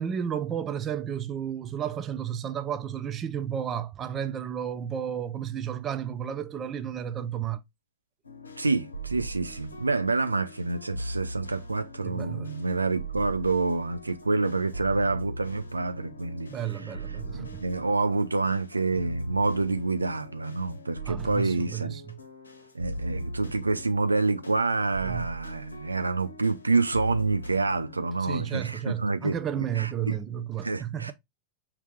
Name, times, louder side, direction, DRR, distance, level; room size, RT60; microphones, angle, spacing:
voice 1, 0.0-7.6 12.0-12.5 16.5-17.7 21.0-22.2 25.0-25.3 28.2-31.1, right 9 dB, 25° right, 0.5 m, -32 dB
sound 1, 8.2-28.1, right 1 dB, 75° left, 0.8 m, -40 dB
voice 2, 8.6-16.5 16.8-17.0 17.3-22.0 22.7-30.1 30.6-31.1, right 3 dB, 80° right, 0.3 m, -27 dB
5.6 x 2.9 x 3.2 m
figure-of-eight pair, 90°, 0 cm